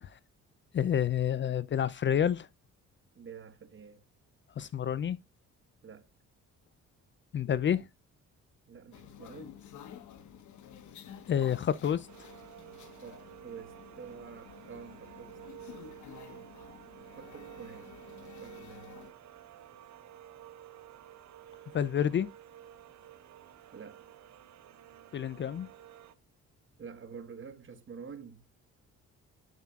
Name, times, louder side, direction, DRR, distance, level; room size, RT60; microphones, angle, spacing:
voice 1, 0.7-2.5 4.6-5.2 7.3-7.9 11.3-12.1 21.7-22.3 25.1-25.7, left 9 dB, 40° left, 0.4 m, -29 dB
voice 2, 3.2-4.0 5.8-6.1 8.7-9.6 12.6-12.7 13.0-15.4 17.2-19.1 23.7-24.0 26.8-28.4, right 6 dB, 40° right, 1.2 m, -48 dB
sound 1, 8.9-19.1, left 9 dB, 75° left, 1.3 m, -51 dB
sound 2, 12.1-26.1, right 11 dB, 65° right, 0.9 m, -52 dB
7.3 x 7.3 x 2.4 m
cardioid pair, 90°, 30 cm